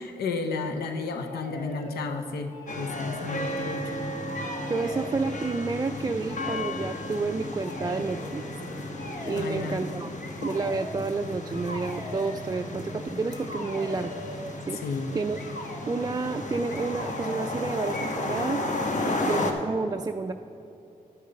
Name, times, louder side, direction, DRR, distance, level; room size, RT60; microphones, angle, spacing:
voice 1, 0.0-2.5 2.8-4.0 9.4-9.8 14.7-15.1, left 4 dB, 90° left, 7 dB, 0.6 m, -32 dB
sound 1, 1.2-2.1 2.5-4.0 4.2-5.5 6.3-6.7 7.6-8.2 8.9-9.7 10.2-11.0 11.5-12.4 13.3-14.5 15.3-15.9 16.7-17.6 17.9-18.6, left 2 dB, 70° left, 1.4 m, -41 dB
sound 2, 2.7-19.5, left 2 dB, 50° left, 1.2 m, -34 dB
voice 2, 4.7-8.4 9.2-14.1 14.7-14.8 15.1-15.4 15.9-18.6 19.1-20.3, right 4 dB, 25° right, 5 dB, 0.3 m, -30 dB
10.5 x 6.6 x 5.2 m, 2.9 s
supercardioid pair, 50°, 16 cm